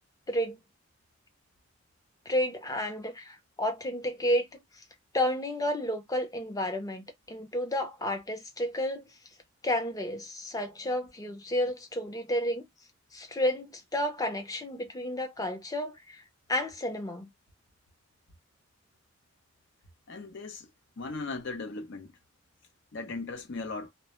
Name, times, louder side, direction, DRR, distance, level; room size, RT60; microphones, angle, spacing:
voice 1, 0.3-0.6 2.3-4.6 5.1-9.1 9.6-12.6 13.1-16.2 16.5-17.3, left 1 dB, 20° left, 0.6 m, -31 dB
voice 2, 20.1-20.7 21.0-22.1 22.9-23.9, left 3 dB, 65° left, 0.6 m, -37 dB
2.1 x 2.0 x 2.9 m
head